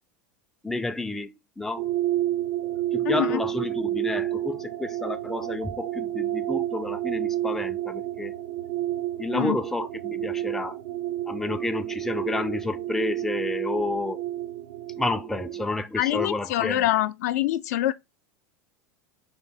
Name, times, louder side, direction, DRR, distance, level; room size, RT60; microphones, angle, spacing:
voice 1, 0.6-1.9 2.6-8.3 9.2-10.8 11.3-14.2 14.9-16.8, left 2 dB, 5° left, 0.4 m, -30 dB
sound 1, 1.8-15.6, right 14 dB, 65° right, 0.5 m, -30 dB
voice 2, 3.0-3.4 9.3-9.6 16.0-17.9, left 14 dB, 70° left, 0.4 m, -25 dB
3.5 x 2.6 x 3.9 m
hypercardioid pair, 90°, 9 cm